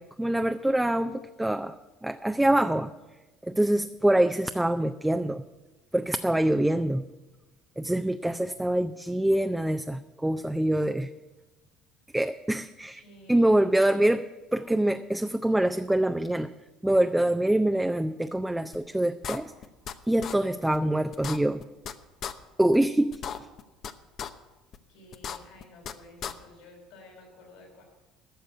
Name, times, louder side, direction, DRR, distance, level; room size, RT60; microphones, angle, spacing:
voice 1, 0.0-2.9 3.4-5.4 5.9-7.1 7.8-11.1 12.1-13.0 13.3-14.2 14.5-16.5 16.8-19.5 20.1-21.6 22.6-23.2, right 1 dB, 10° right, 7 dB, 0.5 m, -25 dB
voice 2, 12.9-13.6 24.9-27.8, left 1 dB, 80° left, 1 dB, 5.2 m, -52 dB
sound 1, 18.7-18.8 19.2-19.9 20.2-20.3 20.7-20.8 21.1-21.9 22.2-22.3 22.7-22.8 23.1-23.9 24.2-24.3 24.7-24.8 25.1-25.9 26.2-26.3, left 8 dB, 55° left, 0.8 m, -35 dB
12.5 x 6.5 x 9.3 m, 1.1 s
hypercardioid pair, 75°, 0 cm